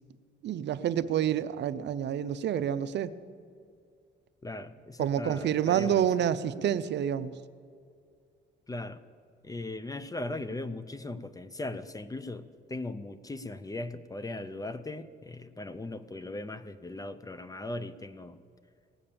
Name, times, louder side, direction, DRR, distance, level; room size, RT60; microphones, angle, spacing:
voice 1, 0.4-3.1 5.0-7.3, right 9 dB, 60° right, 13 dB, 0.5 m, -28 dB
voice 2, 4.4-6.1 8.7-9.0 9.4-18.4, left 2 dB, 20° left, 13 dB, 0.6 m, -38 dB
18.0 x 7.2 x 6.8 m, 2.2 s
cardioid pair, 90°, 20 cm